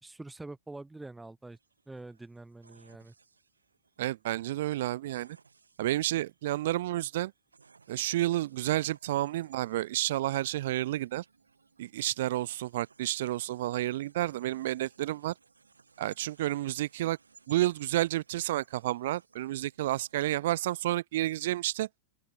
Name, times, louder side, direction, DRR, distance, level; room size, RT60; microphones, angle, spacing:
voice 1, 0.0-1.6 1.9-3.1, right 2 dB, 5° right, 2.1 m, -45 dB
sound 1, 1.5-20.7, right 4 dB, 75° right, 7.4 m, -63 dB
voice 2, 4.0-5.4 5.8-7.3 7.9-11.2 11.8-15.3 16.0-17.2 17.5-21.9, right 15 dB, 55° right, 0.8 m, -30 dB
open air
figure-of-eight pair, 90°, 0 cm